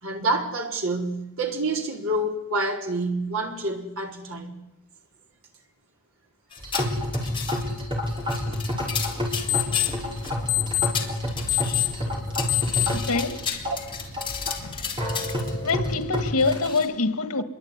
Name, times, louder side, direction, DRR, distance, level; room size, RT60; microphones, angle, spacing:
voice 1, 0.0-4.6 13.7-13.8, right 2 dB, 65° right, 4.2 m, -27 dB
sound 1, 6.5-7.8 8.2-10.3 10.8-11.9 12.3-15.7 16.4-16.9, left 6 dB, 20° left, 3.2 m, -33 dB
sound 2, 6.6-16.7, left 1 dB, 20° right, 5.7 m, -29 dB
sound 3, 9.2-15.7, left 16 dB, 65° left, 2.5 m, -30 dB
voice 2, 12.9-13.6 14.6-14.8 15.3-17.4, left 3 dB, 90° left, 2.1 m, -26 dB
26.5 x 22.5 x 9.7 m
head